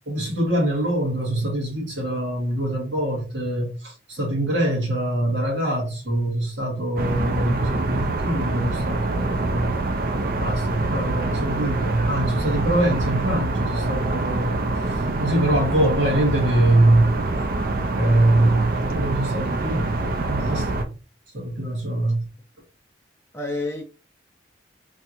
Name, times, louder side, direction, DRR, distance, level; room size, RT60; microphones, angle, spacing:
voice 1, 0.1-9.7 10.4-14.6 14.9-17.2 17.9-18.7 18.9-19.9 20.2-20.9 21.3-22.2, right 1 dB, 75° right, 1.6 m, -23 dB
sound 1, 7.0-20.8, right 2 dB, 50° right, 0.4 m, -25 dB
voice 2, 23.3-23.8, left 2 dB, 15° left, 0.4 m, -31 dB
3.3 x 2.5 x 2.9 m
head